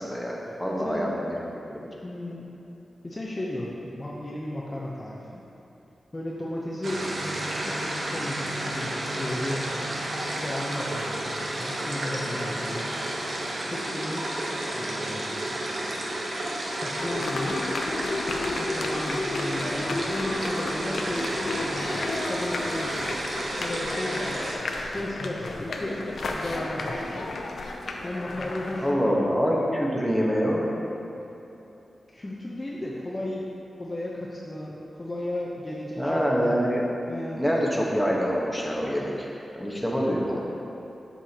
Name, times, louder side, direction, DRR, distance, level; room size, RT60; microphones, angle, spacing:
voice 1, 0.0-1.4 1.7-1.8 28.8-30.6 36.0-36.9 37.3-39.3 39.5-40.5, equal, ahead, -4 dB, 1.2 m, -25 dB
voice 2, 0.7-1.1 2.0-2.5 3.0-5.4 6.1-7.1 7.6-9.8 10.3-12.9 13.7-14.3 14.7-15.5 16.7-17.8 18.6-23.1 23.6-24.4 24.8-27.3 28.0-29.2 32.1-33.5 33.8-36.6 37.1-37.5, left 1 dB, 25° left, -5 dB, 0.8 m, -34 dB
sound 1, 6.8-24.5, right 1 dB, 65° right, 1.0 m, -31 dB
sound 2, 17.0-28.9, left 2 dB, 75° left, 0.6 m, -32 dB
7.3 x 7.0 x 2.9 m, 3.0 s
cardioid pair, 70°, 0 cm